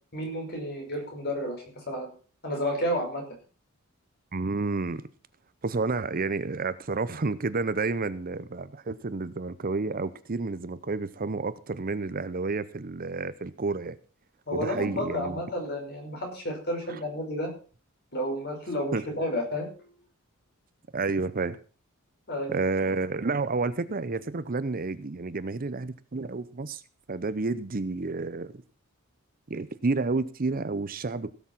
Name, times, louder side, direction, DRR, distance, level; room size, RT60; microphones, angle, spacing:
voice 1, 0.1-2.1 2.4-3.2 14.5-17.5 18.1-19.9 22.3-22.5, equal, 50° left, 5.4 m, -31 dB
voice 2, 4.3-5.0 5.6-14.0 14.5-15.4 16.9-17.0 18.9-19.0 20.9-21.6 22.5-26.8 27.1-28.5 29.5-31.3, right 3 dB, 40° right, 0.7 m, -30 dB
17.0 x 7.1 x 5.8 m
head